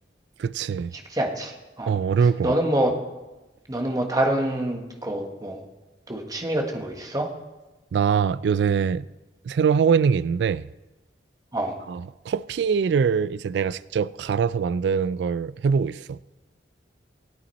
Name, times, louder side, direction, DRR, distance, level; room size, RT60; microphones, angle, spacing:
voice 1, 0.4-0.9 1.9-2.5 7.9-9.1 9.5-10.7 11.9-16.2, right 6 dB, 65° right, 0.3 m, -23 dB
voice 2, 0.9-1.9 2.4-2.9 3.7-5.6 6.1-7.3 11.5-11.8, right 1 dB, 20° right, 1.4 m, -26 dB
17.5 x 8.9 x 4.2 m
head